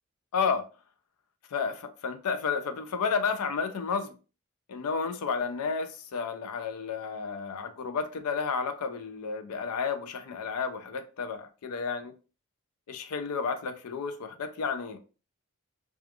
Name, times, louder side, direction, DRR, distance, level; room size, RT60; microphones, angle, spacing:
voice 1, 0.3-0.7 1.5-4.2 4.7-12.1 12.9-15.0, left 5 dB, 80° left, 0.4 m, -31 dB
2.5 x 2.3 x 2.7 m
head